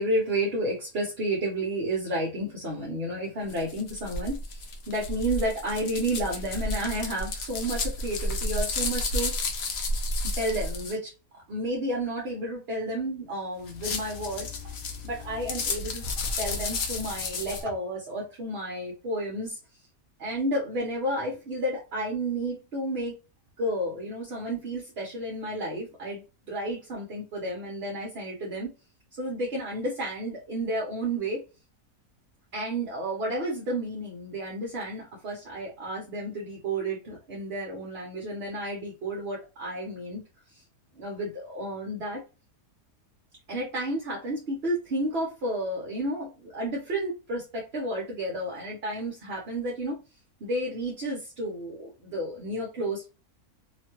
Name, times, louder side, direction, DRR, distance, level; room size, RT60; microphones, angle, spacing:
voice 1, 0.0-9.5 10.2-11.1 11.5-19.6 20.2-23.2 23.6-28.7 29.1-31.4 32.5-40.2 40.5-40.6 41.0-42.2 43.5-50.0 50.4-53.1, right 1 dB, 50° right, -2 dB, 0.9 m, -31 dB
sound 1, 3.5-11.0 13.6-17.6, left 2 dB, 60° left, 0.7 m, -32 dB
2.9 x 2.2 x 2.9 m, 0.30 s
omnidirectional pair, 1.6 m